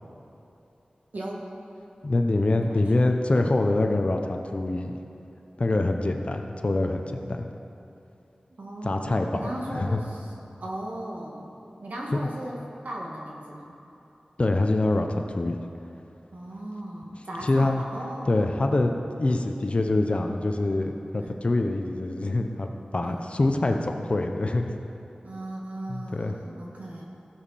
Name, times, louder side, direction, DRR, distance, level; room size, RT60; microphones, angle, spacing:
voice 1, 1.1-1.4 2.6-3.1 3.4-3.6 8.6-10.3 10.6-11.5 11.8-12.6 12.8-13.7 16.3-18.3 21.2-21.4 23.0-23.3 25.2-27.0, right 1 dB, 80° right, -3 dB, 1.8 m, -37 dB
voice 2, 2.0-4.9 5.6-7.5 8.8-9.4 9.7-10.0 12.1-12.3 14.4-15.6 17.4-17.8 18.3-18.9 19.2-24.7 25.9-26.4, left 2 dB, 50° left, 4 dB, 0.8 m, -25 dB
15.5 x 7.3 x 4.3 m, 3.0 s
wide cardioid pair, 75°, 3 cm